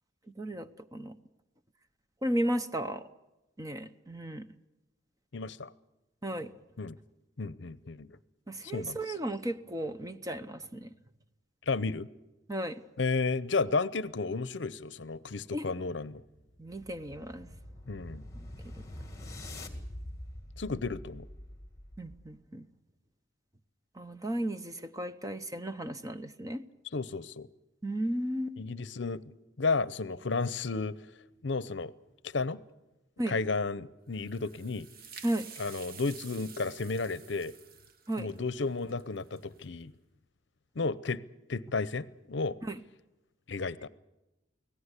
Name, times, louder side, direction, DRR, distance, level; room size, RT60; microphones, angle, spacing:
voice 1, 0.4-1.1 2.2-3.0 3.6-4.5 6.2-6.5 8.5-10.9 12.5-12.8 15.5-15.6 16.6-17.5 18.4-18.5 22.0-22.6 24.0-26.6 27.8-28.6 33.2-33.4 35.2-35.5 38.1-38.3 42.6-42.8, right 1 dB, 20° right, 10 dB, 0.8 m, -34 dB
voice 2, 5.3-5.7 6.8-7.0 7.4-8.1 8.7-9.1 11.7-12.1 13.0-16.2 17.9-18.2 20.6-21.3 26.9-27.5 28.6-29.2 29.6-31.0 31.4-31.9 32.3-32.6 33.3-34.9 35.6-37.5 38.2-39.9 40.8-41.2 41.5-42.6 43.5-43.9, left 4 dB, 65° left, 17 dB, 0.7 m, -32 dB
sound 1, 16.2-22.4, left 1 dB, 15° left, 2.0 m, -45 dB
sound 2, 34.1-39.6, right 7 dB, 50° right, 1.2 m, -50 dB
24.5 x 17.0 x 8.2 m, 1.0 s
head